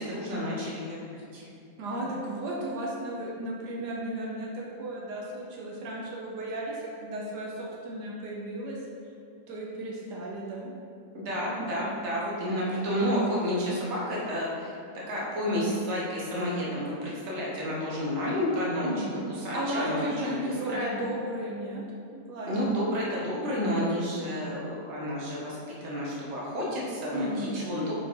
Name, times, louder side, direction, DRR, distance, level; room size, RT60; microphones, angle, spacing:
voice 1, 0.0-1.5 11.1-14.8 15.1-19.0 19.3-20.9 22.5-27.9, equal, 45° right, -5 dB, 1.5 m, -30 dB
voice 2, 1.8-8.8 9.5-10.7 18.8-19.2 19.5-21.8 22.1-22.5 27.1-27.6, right 1 dB, 85° right, -3 dB, 1.4 m, -34 dB
5.2 x 4.5 x 4.4 m, 2.5 s
omnidirectional pair, 1.8 m